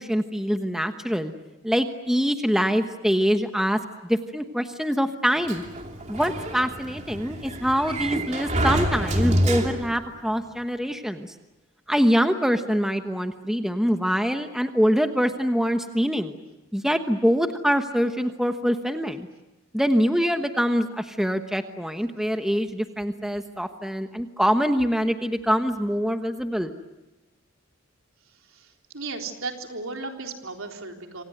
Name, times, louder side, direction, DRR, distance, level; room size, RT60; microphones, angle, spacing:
voice 1, 0.0-1.3 1.6-5.6 6.1-11.3 11.9-16.4 16.7-19.3 19.7-26.7, equal, ahead, 7 dB, 1.1 m, -24 dB
Sliding door, 5.4-10.1, right 1 dB, 30° right, 2.9 m, -27 dB
voice 2, 28.9-31.2, right 3 dB, 70° right, 3 dB, 3.8 m, -35 dB
27.0 x 27.0 x 7.9 m, 1.1 s
head